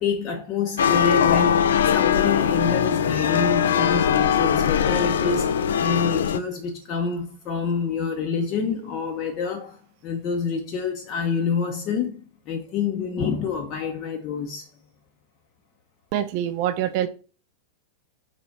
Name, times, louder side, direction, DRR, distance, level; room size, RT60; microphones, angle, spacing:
voice 1, 0.0-14.7, left 6 dB, 40° left, 0.7 m, -27 dB
sound 1, 0.8-6.4, left 8 dB, 65° left, 0.3 m, -21 dB
voice 2, 16.1-17.1, right 11 dB, 45° right, 0.5 m, -25 dB
4.0 x 2.8 x 4.4 m
figure-of-eight pair, 90°, 0 cm